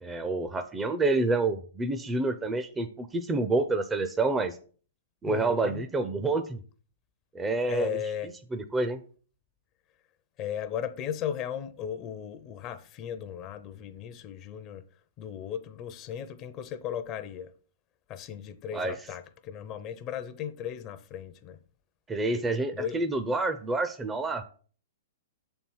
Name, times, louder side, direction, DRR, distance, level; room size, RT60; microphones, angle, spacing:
voice 1, 0.0-4.6 5.2-6.6 7.3-8.0 8.5-9.0 18.7-19.0 22.1-24.4, right 3 dB, 15° right, 0.6 m, -28 dB
voice 2, 5.3-5.8 7.7-8.3 10.4-14.8 15.2-17.5 18.1-21.6 22.7-23.0, left 9 dB, 35° left, 0.6 m, -36 dB
6.9 x 4.5 x 5.5 m
hypercardioid pair, 135°, 0 cm